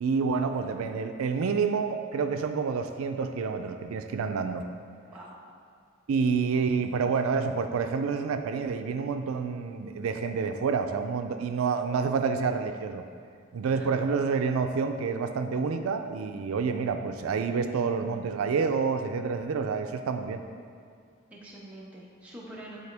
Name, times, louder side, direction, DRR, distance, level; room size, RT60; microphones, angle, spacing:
voice 1, 0.0-4.6 6.1-13.0 13.5-20.4, right 5 dB, 90° right, 7 dB, 0.4 m, -28 dB
voice 2, 5.1-5.4 13.7-13.9 21.3-22.8, right 1 dB, 5° right, -6 dB, 1.0 m, -45 dB
9.6 x 4.2 x 3.4 m, 2.2 s
head